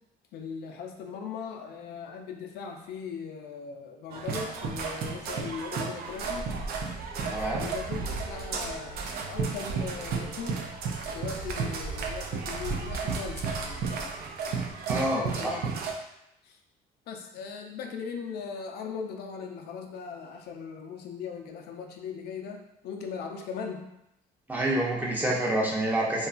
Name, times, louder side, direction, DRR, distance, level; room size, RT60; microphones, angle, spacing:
voice 1, 0.3-6.5 7.1-10.7 11.1-14.2 15.1-15.8 16.4-16.6 17.1-23.9 25.1-25.3, left 6 dB, 70° left, 3 dB, 0.4 m, -39 dB
sound 1, 4.1-15.9, right 5 dB, 65° right, 0.4 m, -33 dB
voice 2, 7.3-7.7 14.9-15.6 24.5-26.3, right 1 dB, 10° right, -4 dB, 0.6 m, -27 dB
2.8 x 2.3 x 2.4 m, 0.84 s
cardioid pair, 110°, 17 cm